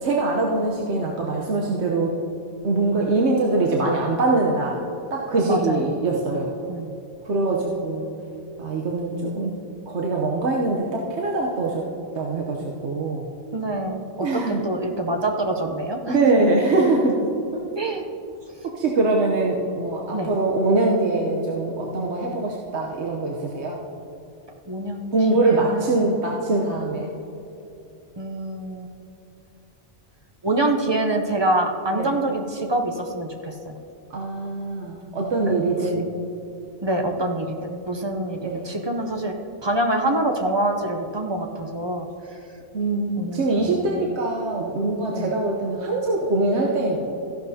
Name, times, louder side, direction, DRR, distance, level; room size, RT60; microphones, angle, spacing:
voice 1, 0.0-2.2 2.6-4.8 5.1-6.5 7.2-8.1 8.6-9.6 9.9-11.8 12.1-13.2 14.2-14.6 16.1-17.2 18.6-23.8 25.1-27.1 31.9-32.1 34.1-36.1 38.4-38.7 42.7-47.0, right 2 dB, 70° right, -2 dB, 1.1 m, -23 dB
voice 2, 5.5-6.0 6.7-6.9 13.5-16.2 17.8-18.0 20.1-20.3 24.7-26.2 28.2-28.9 30.4-33.8 35.8-36.0 36.8-39.3 39.6-42.1 43.2-44.2 45.1-45.3, right 1 dB, 30° right, 3 dB, 0.5 m, -26 dB
14.0 x 11.5 x 2.7 m, 2.9 s
omnidirectional pair, 1.2 m